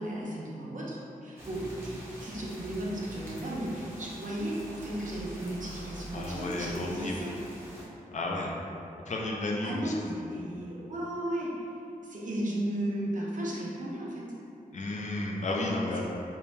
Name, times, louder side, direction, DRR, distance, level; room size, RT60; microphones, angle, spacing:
voice 1, 0.0-7.3 9.6-11.8 12.0-14.3, right 1 dB, 60° right, -5 dB, 0.6 m, -35 dB
sound 1, 1.4-7.8, equal, 15° right, 0.6 m, -45 dB
voice 2, 6.1-7.2 8.1-8.5 9.1-10.3 14.7-16.0, left 2 dB, 55° left, -2 dB, 0.4 m, -33 dB
2.6 x 2.1 x 3.1 m, 2.7 s
wide cardioid pair, 95°, 15 cm